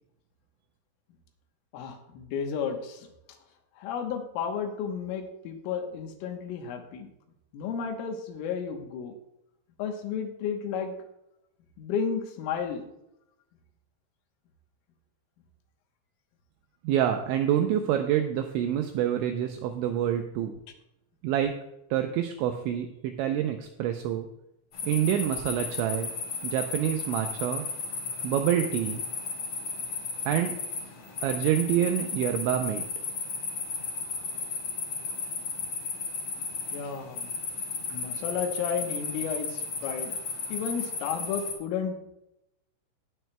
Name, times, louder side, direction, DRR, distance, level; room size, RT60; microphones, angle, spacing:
voice 1, 1.7-3.1 3.8-7.1 7.5-9.1 9.8-10.9 11.8-12.9 36.7-37.3 37.9-40.1 40.5-42.0, left 6 dB, 80° left, 4 dB, 3.6 m, -32 dB
voice 2, 16.8-20.6 21.2-21.6 21.9-24.3 24.8-26.1 26.4-27.6 28.2-29.0 30.3-30.6 31.2-32.8, right 10 dB, 85° right, 6 dB, 2.6 m, -27 dB
sound 1, 24.7-41.5, left 4 dB, 40° left, 3.3 m, -34 dB
19.0 x 9.3 x 2.2 m, 0.85 s
omnidirectional pair, 5.9 m